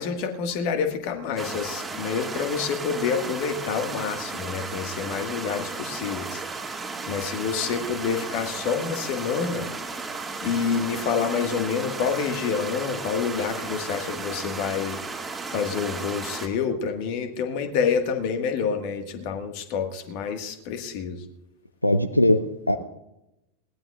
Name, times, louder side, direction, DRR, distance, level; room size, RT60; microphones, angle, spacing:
voice 1, 0.0-6.8 7.1-9.7 10.4-15.0 15.5-21.2, left 6 dB, 45° left, 6 dB, 1.7 m, -28 dB
sound 1, 1.4-16.5, right 4 dB, 10° right, 2.0 m, -34 dB
voice 2, 21.8-22.8, left 1 dB, 85° left, 11 dB, 0.6 m, -20 dB
20.5 x 18.5 x 2.5 m, 0.90 s
figure-of-eight pair, 90°, 0 cm